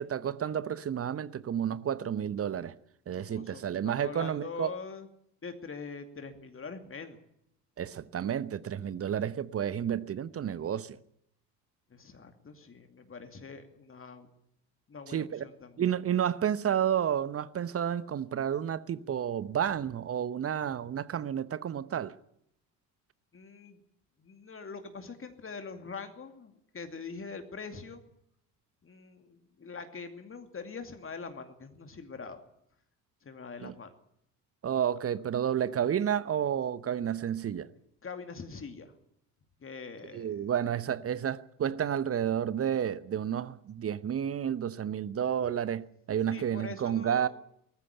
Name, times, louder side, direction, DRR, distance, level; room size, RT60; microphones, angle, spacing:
voice 1, 0.0-2.7 3.1-4.7 7.8-11.0 15.1-15.4 15.8-22.1 33.6-33.7 34.6-37.7 40.1-47.3, right 9 dB, 30° right, 0.9 m, -31 dB
voice 2, 3.3-5.1 5.4-7.2 11.9-14.3 14.9-15.9 23.3-23.8 24.2-28.0 28.8-32.4 33.2-33.9 38.0-38.9 39.6-40.4 46.3-47.3, left 5 dB, 25° left, 2.5 m, -43 dB
19.5 x 14.5 x 9.8 m
figure-of-eight pair, 55°, 47 cm